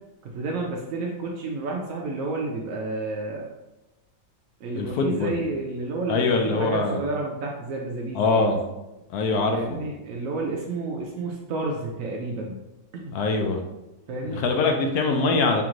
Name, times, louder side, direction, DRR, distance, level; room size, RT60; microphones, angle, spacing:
voice 1, 0.2-3.4 4.6-8.4 9.5-12.6 12.9-13.2 14.1-14.4, right 3 dB, 80° right, -1 dB, 0.7 m, -30 dB
voice 2, 4.7-5.4 6.1-7.0 8.1-8.6 9.1-9.8 13.1-13.6 14.2-15.6, left 3 dB, 70° left, 4 dB, 0.9 m, -23 dB
3.4 x 3.1 x 3.7 m, 0.97 s
omnidirectional pair, 2.0 m